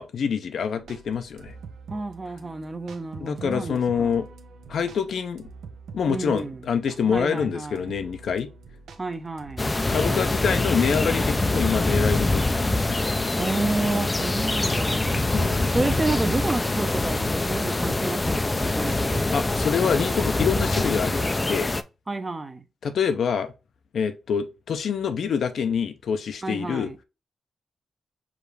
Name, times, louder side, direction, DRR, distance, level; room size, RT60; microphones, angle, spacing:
voice 1, 0.0-1.5 3.2-4.3 4.7-5.5 5.9-8.5 9.9-12.8 15.3-15.8 19.3-21.7 22.8-23.5 23.9-26.9, left 6 dB, 75° left, 0.6 m, -26 dB
sound 1, 0.8-19.4, right 5 dB, 85° right, 0.6 m, -44 dB
voice 2, 1.9-4.2 6.1-6.6 7.0-7.9 9.0-9.7 13.4-15.3 15.7-19.2 22.1-22.6 26.4-27.0, right 2 dB, 30° right, 0.7 m, -30 dB
sound 2, 9.6-21.8, left 2 dB, 25° left, 0.4 m, -24 dB
4.9 x 2.5 x 3.1 m
cardioid pair, 65°, 0 cm